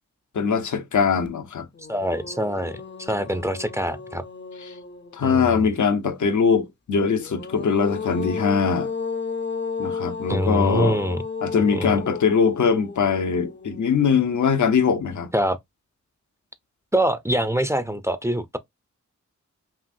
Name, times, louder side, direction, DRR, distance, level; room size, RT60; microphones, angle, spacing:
voice 1, 0.3-1.7 4.6-4.7 5.1-8.9 9.8-11.0 11.4-15.3, left 6 dB, 70° left, 0.8 m, -22 dB
sound 1, 1.2-1.3 1.7-5.4 7.1-14.3, left 5 dB, 40° left, 0.6 m, -33 dB
voice 2, 1.9-4.2 5.2-5.7 10.3-11.2 11.7-12.0 15.3-15.6 16.9-18.6, right 1 dB, 10° right, 0.5 m, -24 dB
5.8 x 2.5 x 2.6 m
wide cardioid pair, 95°, 30 cm